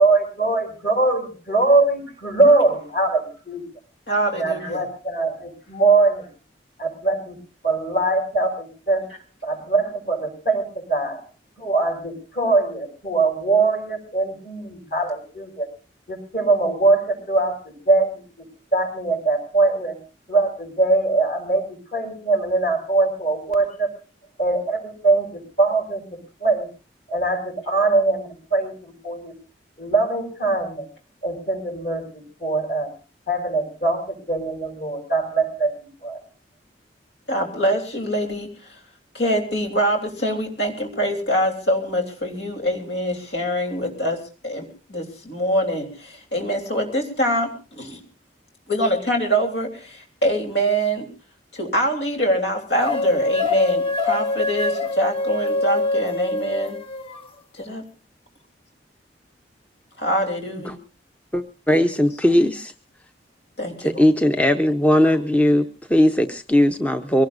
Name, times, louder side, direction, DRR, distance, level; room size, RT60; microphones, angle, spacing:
voice 1, 0.0-3.6 4.3-6.3 6.8-7.4 7.6-9.1 9.4-11.2 11.6-15.7 16.1-18.5 18.7-20.0 20.3-23.9 24.4-26.7 27.1-29.3 29.8-30.9 31.2-32.9 33.3-36.2, right 3 dB, 50° left, 4 dB, 6.1 m, -22 dB
voice 2, 4.1-4.8 37.3-38.8 39.1-48.0 48.7-51.1 51.5-56.8 57.5-57.8 60.0-60.8 61.7-61.9 63.6-64.0, equal, 70° left, 2 dB, 3.3 m, -24 dB
sound 1, 52.8-57.3, left 2 dB, 30° left, 1.3 m, -24 dB
voice 3, 61.3-62.7 64.0-67.3, left 1 dB, 10° left, 7 dB, 0.7 m, -18 dB
23.5 x 18.0 x 2.6 m, 0.34 s
head